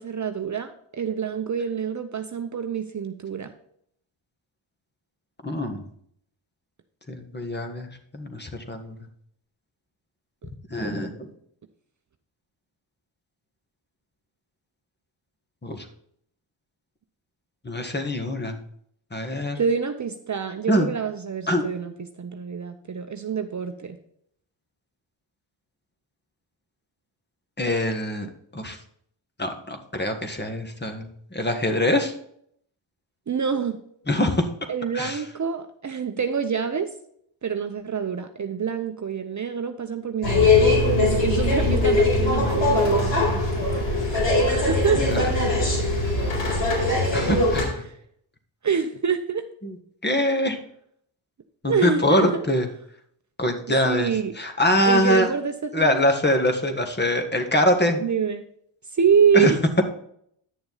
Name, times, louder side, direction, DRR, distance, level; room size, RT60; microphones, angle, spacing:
voice 1, 0.0-3.5 19.6-21.9 22.2-24.0 33.3-33.8 34.7-36.9 37.4-45.3 47.8-47.9 48.6-49.4 51.6-52.4 53.8-54.3 54.8-56.0 58.0-58.4 58.9-59.6, right 7 dB, 35° right, 7 dB, 0.8 m, -26 dB
voice 2, 5.4-5.8 7.1-7.9 8.1-8.9 10.7-11.3 15.6-15.8 17.6-18.6 19.1-19.6 20.7-20.9 21.5-21.6 27.6-28.8 29.4-32.1 34.1-34.4 34.9-35.2 45.0-45.2 47.1-47.8 49.6-49.7 50.0-50.6 51.6-52.7 53.4-54.1 54.4-55.3 55.7-58.0 59.3-59.5, left 1 dB, 20° left, 6 dB, 1.6 m, -23 dB
sound 1, 40.2-47.6, left 2 dB, 60° left, 4.3 m, -21 dB
9.7 x 6.8 x 4.0 m, 0.68 s
cardioid pair, 60°, 50 cm